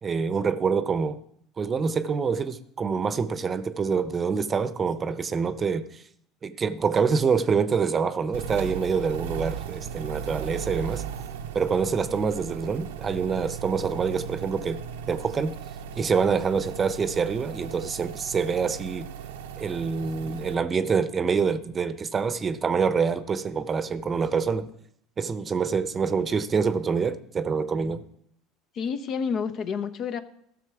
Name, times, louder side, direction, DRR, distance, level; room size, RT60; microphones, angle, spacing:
voice 1, 0.0-1.2 1.6-6.0 6.4-11.0 11.5-14.8 15.1-15.6 16.0-19.1 19.6-24.7 25.2-28.0, right 5 dB, 30° right, 0.7 m, -26 dB
sound 1, 8.3-20.5, right 8 dB, 85° right, 0.7 m, -37 dB
voice 2, 28.7-30.2, left 6 dB, 50° left, 0.7 m, -29 dB
14.0 x 6.4 x 4.8 m
hypercardioid pair, 85°, 0 cm